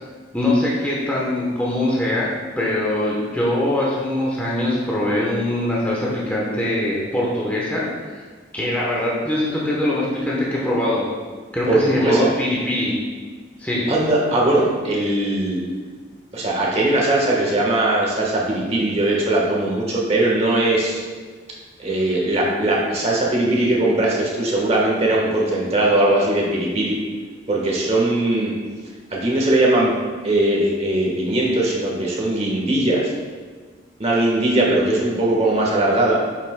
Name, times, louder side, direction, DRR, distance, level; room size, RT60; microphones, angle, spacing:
voice 1, 0.3-2.3 2.6-8.2 8.5-11.0 11.5-12.9 13.6-13.9, left 1 dB, 10° left, -6 dB, 0.9 m, -22 dB
voice 2, 11.7-12.3 13.9-15.6 16.3-21.0 21.8-26.9 27.5-28.5 29.1-29.9 30.2-33.1 34.0-36.2, right 1 dB, 30° right, -3 dB, 1.3 m, -20 dB
8.0 x 5.9 x 2.2 m, 1.5 s
head